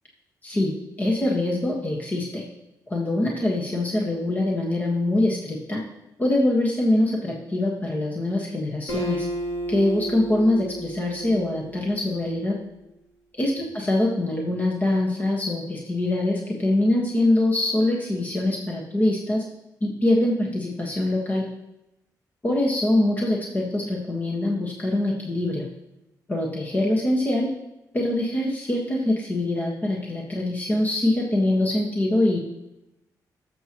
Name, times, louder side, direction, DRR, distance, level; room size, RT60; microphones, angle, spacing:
voice 1, 0.4-2.4 2.9-5.8 6.2-9.3 9.7-12.6 13.4-19.4 19.8-21.5 22.4-25.6 26.3-27.5 27.9-32.4, left 1 dB, 25° left, -2 dB, 1.6 m, -24 dB
Acoustic guitar, 8.9-12.3, right 1 dB, 40° left, 3.0 m, -32 dB
18.0 x 7.5 x 3.1 m, 0.92 s
cardioid pair, 125°, 7 cm